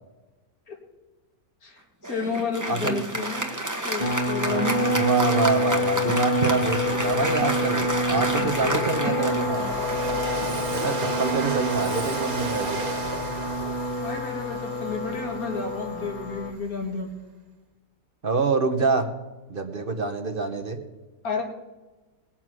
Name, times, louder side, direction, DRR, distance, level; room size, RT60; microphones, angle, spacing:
voice 1, 1.6-4.9 14.0-17.1 21.2-21.4, left 4 dB, 85° left, 1 dB, 2.7 m, -31 dB
Applause, 2.0-11.8, right 1 dB, 15° right, 1.2 m, -30 dB
voice 2, 2.7-3.1 4.4-9.7 10.5-12.8 18.2-19.1 19.5-20.8, right 3 dB, 40° right, 6 dB, 1.2 m, -26 dB
sound 1, 4.0-16.5, equal, 40° left, 1.0 m, -28 dB
Train, 5.9-6.0 6.4-16.8, right 4 dB, 85° right, 1.9 m, -35 dB
20.0 x 7.4 x 6.2 m, 1.2 s
omnidirectional pair, 1.5 m